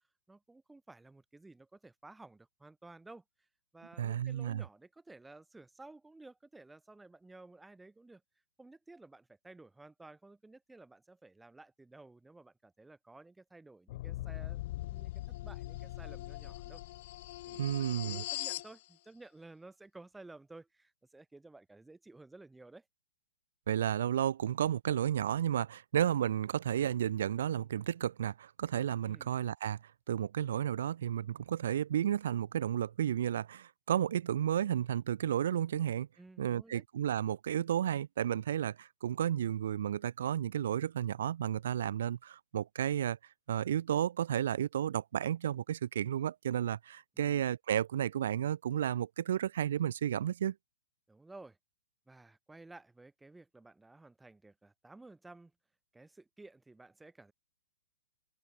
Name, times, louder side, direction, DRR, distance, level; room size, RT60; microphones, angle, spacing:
voice 1, 0.3-3.5 3.7-8.2 8.6-15.1 15.4-16.8 17.4-22.9 29.1-29.3 36.2-36.8 51.1-51.6 52.1-55.5 55.9-57.3, right 2 dB, 5° right, 2.1 m, -55 dB
voice 2, 4.0-4.6 17.6-18.2 23.7-29.8 30.1-36.1 36.4-43.2 43.5-50.5, right 10 dB, 65° right, 0.3 m, -32 dB
sound 1, 13.9-18.7, left 17 dB, 45° left, 1.9 m, -41 dB
open air
hypercardioid pair, 150°, 0 cm